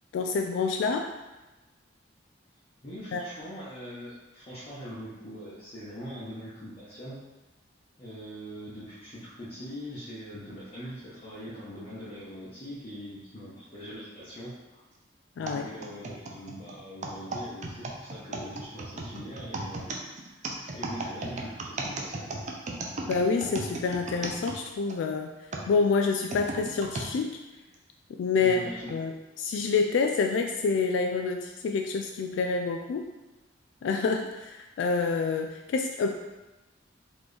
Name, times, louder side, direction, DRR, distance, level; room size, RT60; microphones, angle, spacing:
voice 1, 0.1-1.1 3.1-3.3 15.4-15.7 23.1-25.3 25.7-27.4 28.1-28.6 28.9-33.0 33.8-36.2, left 4 dB, 75° left, 4 dB, 0.3 m, -27 dB
voice 2, 2.8-7.2 8.0-14.5 15.4-19.9 20.2-20.4 20.7-22.3 28.4-28.9, equal, 35° left, -10 dB, 0.9 m, -42 dB
sound 1, 15.5-25.0 25.5-27.1 27.7-27.8 28.7-28.9, right 2 dB, 40° right, 0.5 m, -36 dB
4.2 x 3.0 x 3.3 m, 1.1 s
head